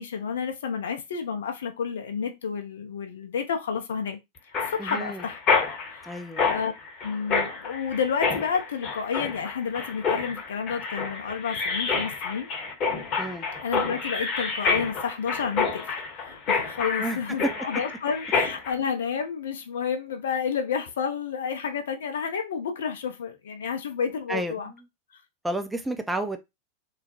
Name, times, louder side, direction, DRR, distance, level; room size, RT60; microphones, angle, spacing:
voice 1, 0.0-4.2 4.5-5.4 5.9-6.2 6.5-6.7 7.0-12.5 13.6-24.7 26.2-26.3, left 6 dB, 60° left, 0.5 m, -30 dB
Mechanisms, 4.5-18.7, left 5 dB, 35° left, 0.9 m, -28 dB
voice 2, 4.8-5.2 6.0-6.4 13.2-13.5 17.0-17.2 24.3-24.8 25.4-26.4, right 1 dB, 5° right, 0.4 m, -31 dB
3.0 x 2.0 x 2.8 m
figure-of-eight pair, 90°, 0 cm